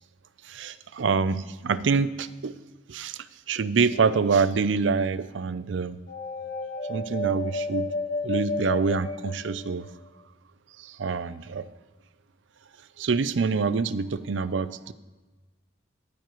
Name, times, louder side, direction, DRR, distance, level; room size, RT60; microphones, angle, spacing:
voice 1, 0.4-2.5 2.9-6.0 6.9-7.9 8.2-9.9 10.8-11.7 13.0-14.9, right 5 dB, 75° right, 15 dB, 0.5 m, -26 dB
sound 1, 3.9-4.6 6.1-9.9, left 3 dB, 50° left, 1.3 m, -32 dB
16.0 x 14.0 x 3.1 m, 1.2 s
head